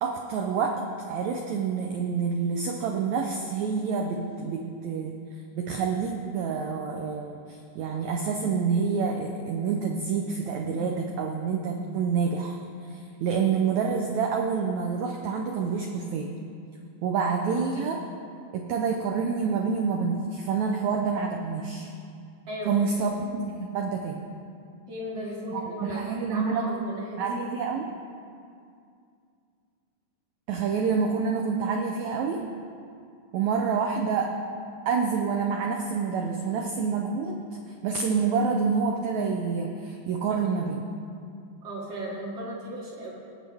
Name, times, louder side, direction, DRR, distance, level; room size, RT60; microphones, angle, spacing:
voice 1, 0.0-5.2 5.6-16.3 17.0-18.0 18.5-21.9 22.7-24.2 25.5-26.8 27.2-27.9 30.5-32.4 33.3-34.3 34.9-40.8, right 5 dB, 85° right, 3 dB, 1.6 m, -28 dB
voice 2, 22.5-23.2 24.9-27.3 40.3-40.4 41.6-43.1, right 1 dB, 50° right, -5 dB, 2.4 m, -36 dB
19.5 x 8.2 x 3.5 m, 2.3 s
omnidirectional pair, 4.1 m